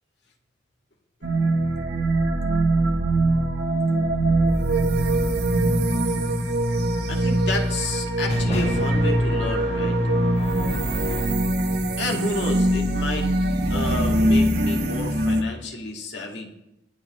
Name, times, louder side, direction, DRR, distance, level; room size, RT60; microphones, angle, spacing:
sound 1, 1.2-15.4, right 1 dB, 60° right, 1.3 m, -22 dB
voice 1, 7.1-10.0 12.0-13.3 13.7-16.6, left 2 dB, 65° left, 1 dB, 2.1 m, -31 dB
sound 2, 8.3-11.5, left 1 dB, 35° left, 1.2 m, -34 dB
21.0 x 9.3 x 3.2 m, 0.85 s
head